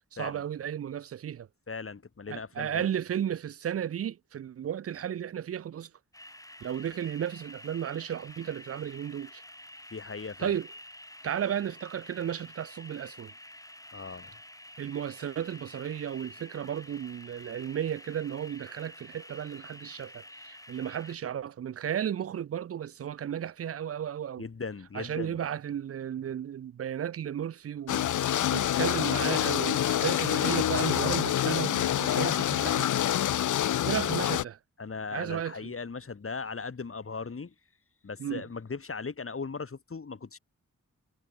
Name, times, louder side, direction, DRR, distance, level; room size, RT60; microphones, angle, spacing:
voice 1, 0.1-1.5 2.3-5.9 6.6-9.4 10.4-10.7 11.2-13.3 14.8-24.4 24.9-28.1 28.5-32.9 33.8-34.6 35.1-35.7 38.2-38.4, right 9 dB, 50° right, 0.4 m, -34 dB
voice 2, 1.7-2.9 9.9-10.5 13.9-14.4 24.4-25.4 28.5-28.8 34.8-37.5 38.0-40.4, left 4 dB, 45° left, 1.8 m, -38 dB
sound 1, 6.1-21.2, left 1 dB, 10° left, 6.5 m, -49 dB
sound 2, 27.9-34.4, left 11 dB, 70° left, 0.5 m, -27 dB
cardioid pair, 60°, 32 cm